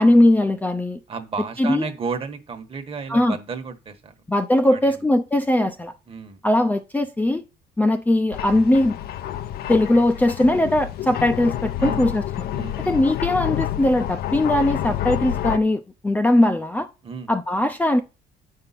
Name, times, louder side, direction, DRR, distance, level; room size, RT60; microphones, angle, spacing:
voice 1, 0.0-1.0 1.6-1.8 3.1-3.4 4.3-5.9 6.4-7.4 7.8-9.0 9.7-12.2 12.9-16.9 17.3-18.0, left 1 dB, 10° left, 0.5 m, -19 dB
voice 2, 1.1-4.1 4.6-5.0 6.1-6.4 11.8-12.0 12.5-12.8 17.0-17.3, right 5 dB, 35° right, 1.3 m, -32 dB
sound 1, 8.3-15.6, left 12 dB, 65° left, 0.6 m, -28 dB
8.7 x 5.5 x 4.2 m
cardioid pair, 110°, 17 cm